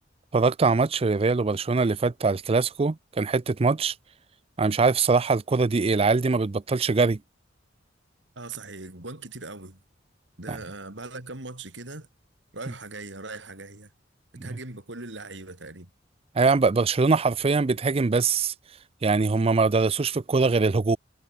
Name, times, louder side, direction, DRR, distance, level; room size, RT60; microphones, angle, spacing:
voice 1, 0.3-3.9 4.6-7.2 10.5-10.6 14.4-14.5 16.4-18.5 19.0-21.0, right 4 dB, 30° right, 0.5 m, -22 dB
voice 2, 8.4-9.8 10.4-12.1 12.5-13.9 14.4-15.9, right 3 dB, 70° right, 4.0 m, -40 dB
head